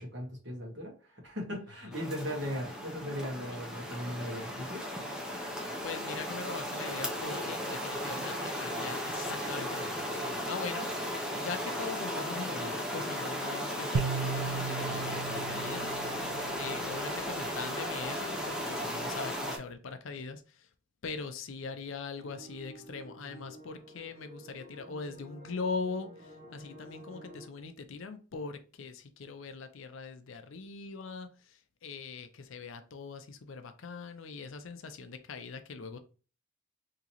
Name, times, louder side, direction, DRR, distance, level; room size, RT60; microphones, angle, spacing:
voice 1, 0.0-4.8, equal, 55° right, 1.5 m, -38 dB
sound 1, 1.9-19.6, equal, 5° right, 0.5 m, -36 dB
voice 2, 5.8-16.0 16.6-20.7 21.0-36.0, left 4 dB, 65° left, 0.5 m, -41 dB
sound 2, 13.9-17.2, right 5 dB, 80° right, 0.4 m, -36 dB
sound 3, 22.1-27.5, equal, 25° right, 0.9 m, -50 dB
3.7 x 2.9 x 2.9 m
head